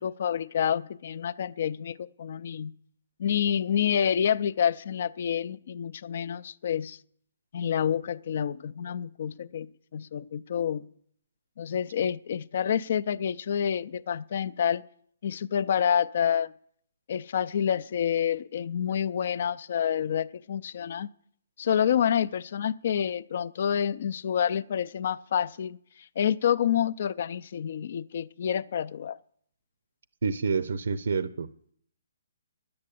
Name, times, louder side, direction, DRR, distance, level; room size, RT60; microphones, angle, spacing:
voice 1, 0.0-2.7 3.2-7.0 7.5-10.9 11.6-14.8 15.2-16.5 17.1-21.1 21.6-25.8 26.2-29.2, left 8 dB, 50° left, 0.4 m, -28 dB
voice 2, 30.2-31.5, right 5 dB, 75° right, 0.6 m, -28 dB
10.5 x 8.6 x 8.4 m
hypercardioid pair, 160°, 0 cm